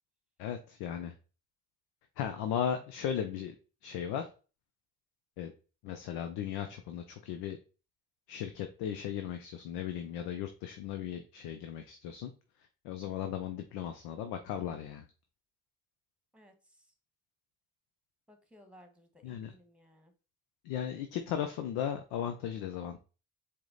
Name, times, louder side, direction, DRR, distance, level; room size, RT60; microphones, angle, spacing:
voice 1, 0.4-1.1 2.2-3.6 3.8-4.3 5.4-5.5 5.8-7.6 8.3-12.3 12.8-15.1 19.2-19.5 20.6-23.0, left 9 dB, 80° left, 7 dB, 0.5 m, -36 dB
voice 2, 16.3-16.9 18.3-20.1, equal, 5° right, 5 dB, 1.3 m, -60 dB
4.6 x 2.2 x 3.9 m, 0.34 s
hypercardioid pair, 45°, 36 cm